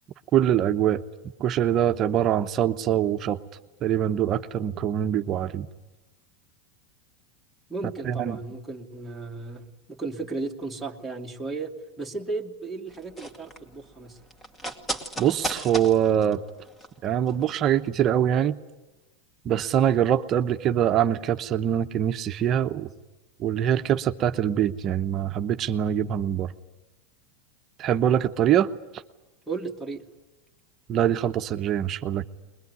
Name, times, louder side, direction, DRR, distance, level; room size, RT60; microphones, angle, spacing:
voice 1, 0.3-1.0 1.4-3.4 3.8-5.7 8.0-8.4 15.2-16.4 17.0-18.5 19.4-22.9 23.4-26.5 27.8-28.7 30.9-32.2, right 10 dB, 35° right, 8 dB, 0.9 m, -23 dB
voice 2, 7.7-14.2 29.5-30.0, right 3 dB, ahead, -2 dB, 2.2 m, -35 dB
sound 1, 12.9-17.5 17.8-17.9, right 1 dB, 15° left, 2.3 m, -36 dB
21.5 x 21.0 x 9.6 m, 1.1 s
supercardioid pair, 125°, 0 cm